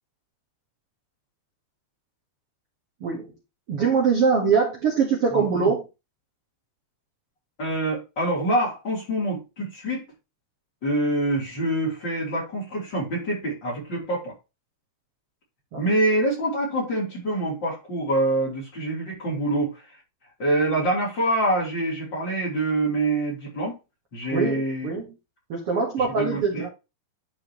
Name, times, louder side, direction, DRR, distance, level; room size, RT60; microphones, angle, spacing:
voice 1, 3.0-3.3 3.7-5.9 15.7-15.8 24.3-25.0 25.5-26.7, right 5 dB, 50° right, -2 dB, 1.9 m, -23 dB
voice 2, 5.3-5.7 7.6-10.1 10.8-14.3 15.8-20.0 20.4-23.8 24.1-24.9 26.0-26.7, right 1 dB, 30° left, -4 dB, 3.6 m, -25 dB
11.0 x 5.1 x 3.0 m, 0.27 s
omnidirectional pair, 4.5 m